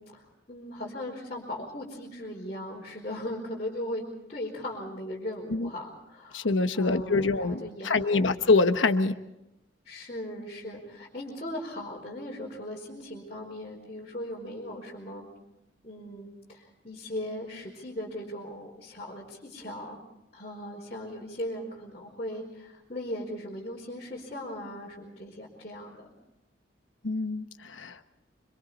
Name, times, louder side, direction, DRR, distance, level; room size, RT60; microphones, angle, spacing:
voice 1, 0.0-8.3 9.8-15.3 15.8-20.0 20.3-26.1, left 1 dB, 35° left, -5 dB, 4.6 m, -38 dB
voice 2, 6.3-9.2 27.0-28.0, left 3 dB, 85° left, 9 dB, 1.2 m, -25 dB
26.0 x 26.0 x 4.2 m, 0.92 s
head